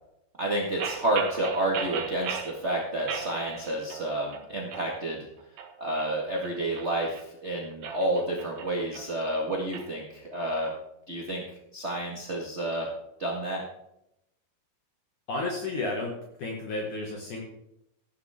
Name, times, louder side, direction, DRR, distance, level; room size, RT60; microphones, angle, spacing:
voice 1, 0.4-5.3 5.8-10.7 11.1-11.4 11.7-12.9 13.2-13.6, right 1 dB, 35° right, -2 dB, 1.0 m, -30 dB
sound 1, 0.8-2.6 3.1-4.1 4.3-4.9 5.4-7.2 7.7-9.9, right 7 dB, 75° right, 3.1 m, -37 dB
voice 2, 15.3-16.1 16.4-17.4, left 2 dB, 60° left, -1 dB, 3.1 m, -32 dB
14.5 x 11.0 x 3.6 m, 0.81 s
omnidirectional pair, 4.4 m